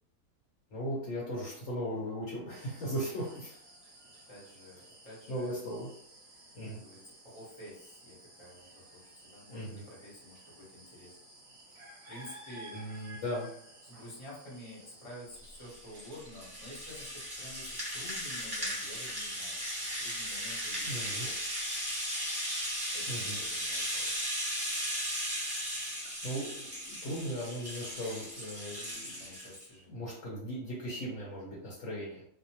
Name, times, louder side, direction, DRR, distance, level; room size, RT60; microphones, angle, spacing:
voice 1, 0.7-3.5 5.3-5.9 6.5-6.8 9.5-9.8 12.7-13.5 20.8-21.2 23.1-23.4 25.8-26.0 26.2-29.2 29.9-32.2, equal, 55° left, -5 dB, 1.1 m, -37 dB
sound 1, 2.5-16.1, right 1 dB, 40° right, 0.9 m, -54 dB
voice 2, 4.3-5.5 6.7-11.2 12.1-12.8 13.8-21.4 22.9-24.2 29.2-30.1, left 1 dB, 20° left, -6 dB, 0.9 m, -50 dB
Rattle (instrument), 15.4-29.6, equal, 25° right, 0.6 m, -36 dB
2.7 x 2.1 x 2.9 m, 0.68 s
omnidirectional pair, 1.7 m